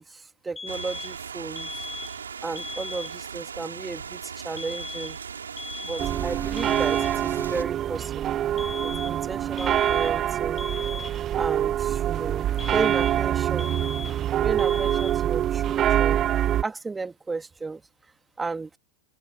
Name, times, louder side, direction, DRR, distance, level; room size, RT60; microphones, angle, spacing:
voice 1, 0.0-1.8 2.4-5.2 5.8-8.4 8.8-10.6 11.3-13.7 14.4-16.3 16.6-17.8 18.4-18.7, right 4 dB, 10° right, 2.8 m, -34 dB
sound 1, 0.6-1.2 1.6-2.2 2.6-3.2 4.6-5.2 5.6-6.2 6.6-7.2 8.6-9.2 9.6-10.2 10.6-11.2 12.6-13.3 13.6-14.3 14.6-15.3, left 4 dB, 15° left, 6.1 m, -38 dB
sound 2, 0.7-7.6, right 6 dB, 70° right, 5.6 m, -38 dB
sound 3, 6.0-16.6, right 11 dB, 30° right, 0.4 m, -25 dB
open air
figure-of-eight pair, 90°, 0 cm